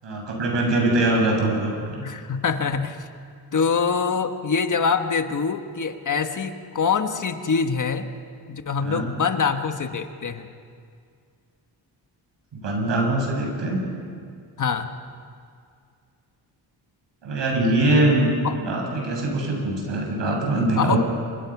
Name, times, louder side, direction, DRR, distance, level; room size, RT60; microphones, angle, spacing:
voice 1, 0.0-1.9 8.8-9.1 12.5-13.8 17.2-18.3 18.6-21.0, right 2 dB, 80° right, 0 dB, 7.4 m, -22 dB
voice 2, 1.9-3.1 3.5-8.1 8.5-10.5 14.6-14.9 18.4-18.5 20.8-21.0, left 5 dB, 45° left, 7 dB, 1.4 m, -24 dB
27.5 x 25.5 x 6.1 m, 2.2 s
wide cardioid pair, 115°, 43 cm